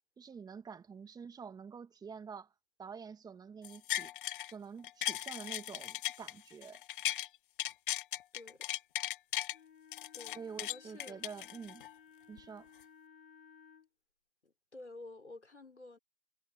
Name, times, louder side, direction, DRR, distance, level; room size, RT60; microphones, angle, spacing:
voice 1, 0.2-2.5 2.8-4.1 4.5-6.8 10.3-11.9 12.3-12.7, right 6 dB, 10° right, 2.1 m, -48 dB
sound 1, 3.6-4.5 4.8-7.3 7.6-9.6 9.9-11.9 12.4-12.5, left 12 dB, 50° left, 0.7 m, -37 dB
voice 2, 8.3-8.7 10.1-10.4 10.7-11.2 14.4-16.0, left 2 dB, 90° left, 4.1 m, -51 dB
Wind instrument woodwind instrument, 9.5-13.9, left 7 dB, 65° left, 4.2 m, -59 dB
figure-of-eight pair, 120°, 33 cm